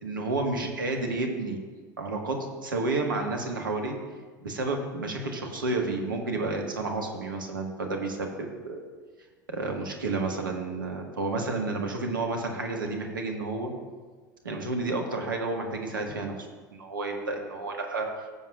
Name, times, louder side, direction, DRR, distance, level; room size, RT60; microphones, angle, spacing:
voice 1, 0.0-1.6 2.0-2.4 2.6-3.9 4.4-8.8 9.5-13.7 14.4-16.5 16.8-18.1, right 3 dB, 80° right, 2 dB, 1.5 m, -30 dB
15.5 x 7.6 x 2.4 m, 1.4 s
figure-of-eight pair, 75°, 11 cm